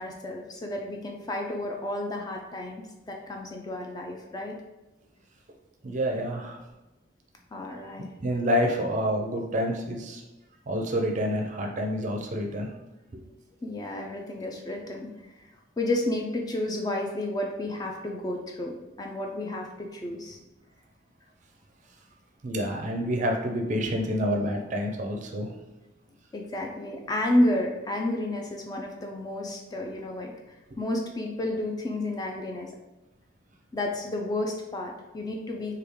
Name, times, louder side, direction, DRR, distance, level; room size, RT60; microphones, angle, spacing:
voice 1, 0.0-4.6 7.5-8.1 13.6-15.1 15.4-15.5 15.8-20.4 26.3-32.7 33.7-35.8, left 1 dB, 20° left, 1 dB, 0.3 m, -31 dB
voice 2, 5.8-6.6 8.2-10.2 10.7-12.7 13.1-13.2 22.4-25.5, equal, 40° right, 2 dB, 0.5 m, -28 dB
3.1 x 2.3 x 3.4 m, 1.0 s
head